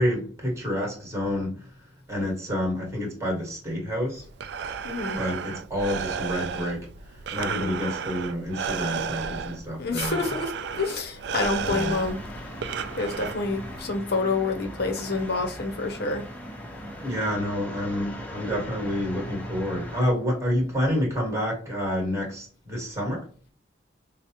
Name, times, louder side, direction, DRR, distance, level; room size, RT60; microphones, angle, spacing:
voice 1, 0.0-1.7 2.1-4.2 5.2-10.3 11.6-11.9 17.0-23.3, equal, 15° right, 1.4 m, -28 dB
Breathing, 4.2-13.8, right 6 dB, 60° right, 0.3 m, -33 dB
voice 2, 4.8-5.2 9.8-12.4 13.0-16.2, left 3 dB, 55° left, 0.6 m, -28 dB
sound 1, 11.6-20.1, equal, 10° left, 0.7 m, -39 dB
4.8 x 2.0 x 2.9 m
head